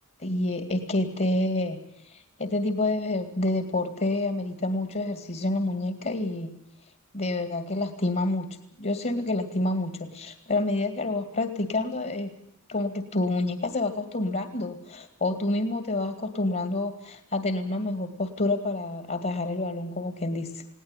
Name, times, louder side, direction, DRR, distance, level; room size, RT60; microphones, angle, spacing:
voice 1, 0.2-6.5 7.1-12.3 12.7-20.6, left 2 dB, 40° left, 9 dB, 2.2 m, -28 dB
20.5 x 18.0 x 9.7 m, 0.77 s
head